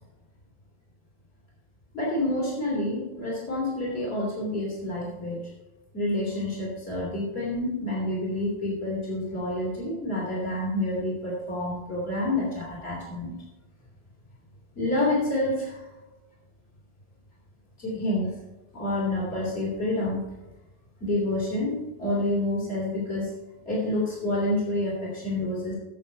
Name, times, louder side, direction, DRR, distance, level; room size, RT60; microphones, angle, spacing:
voice 1, 1.9-5.4 5.9-13.4 14.7-15.9 17.8-18.4 18.7-20.2 21.0-23.3 23.6-25.8, left 1 dB, 70° left, -4 dB, 3.4 m, -28 dB
15.0 x 7.5 x 4.4 m, 1.1 s
omnidirectional pair, 1.1 m